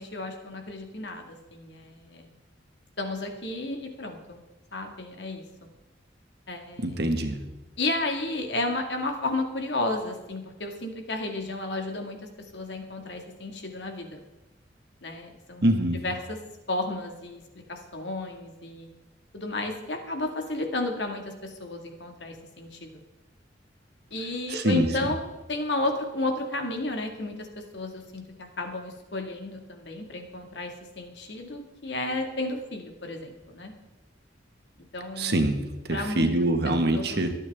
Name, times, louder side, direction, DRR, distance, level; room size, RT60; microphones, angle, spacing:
voice 1, 0.0-2.3 3.0-4.4 4.7-5.4 6.5-7.0 7.8-12.2 12.5-14.2 15.0-15.6 16.0-16.4 16.7-17.4 17.7-18.9 19.3-23.0 24.1-33.7 34.9-35.5 35.9-36.3 36.7-37.3, left 2 dB, 70° left, 3 dB, 2.1 m, -32 dB
voice 2, 6.8-7.5 15.6-16.0 24.5-24.9 35.2-37.3, right 1 dB, 60° right, 5 dB, 1.6 m, -24 dB
23.5 x 8.8 x 3.6 m, 1.1 s
head